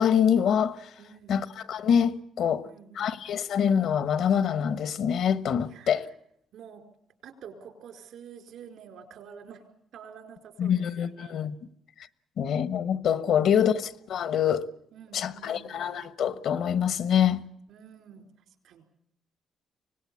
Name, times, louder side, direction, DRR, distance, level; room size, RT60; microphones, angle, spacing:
voice 1, 0.0-0.9 1.3-2.6 2.9-6.1 10.6-11.5 12.4-14.7 15.1-17.4, left 8 dB, 75° left, 1.1 m, -25 dB
voice 2, 1.0-1.4 2.4-3.1 5.6-6.1 6.5-6.8 7.2-9.6 9.9-11.4 13.3-13.7 14.9-15.8 17.7-18.3 18.6-18.8, right 7 dB, 80° right, 4.6 m, -48 dB
25.0 x 18.5 x 8.4 m
cardioid pair, 90°, 0 cm